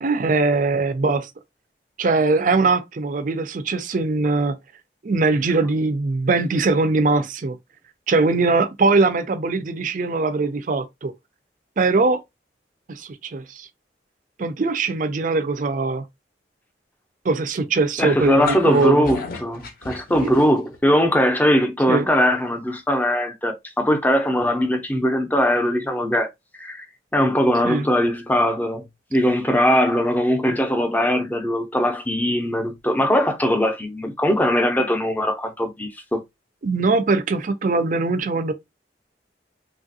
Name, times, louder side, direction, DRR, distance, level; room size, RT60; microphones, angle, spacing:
voice 1, 0.0-1.3 2.0-4.6 5.0-7.6 8.1-11.1 11.8-12.2 12.9-13.7 14.4-16.0 17.2-19.1 20.2-20.4 21.9-22.1 27.6-27.9 36.6-38.5, right 3 dB, 45° right, 0.5 m, -21 dB
voice 2, 18.0-26.3 26.6-26.8 27.1-28.8 29.1-36.2, equal, 10° left, 0.6 m, -20 dB
sound 1, 18.2-20.8, left 4 dB, 55° left, 0.6 m, -33 dB
3.3 x 2.4 x 2.6 m
head